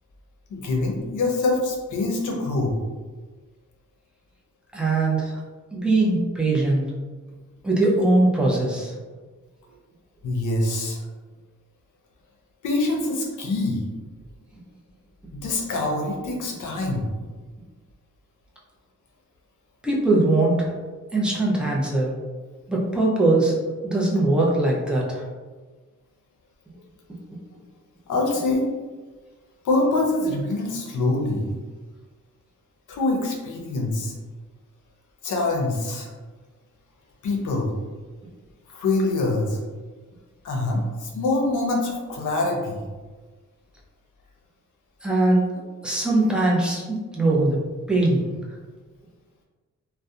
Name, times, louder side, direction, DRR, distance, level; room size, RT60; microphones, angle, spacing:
voice 1, 0.5-2.7 10.2-11.0 12.6-13.8 15.3-17.1 28.1-28.6 29.6-31.5 32.9-34.1 35.2-36.1 37.2-37.7 38.7-39.6 40.4-42.8, left 2 dB, 75° left, 0 dB, 0.6 m, -24 dB
voice 2, 4.7-5.4 5.7-6.9 7.6-8.9 19.8-20.7 21.1-22.1 22.7-25.2 45.0-47.6 47.9-48.3, right 2 dB, 5° right, -4 dB, 0.4 m, -21 dB
2.6 x 2.1 x 2.4 m, 1.3 s
wide cardioid pair, 135°, 31 cm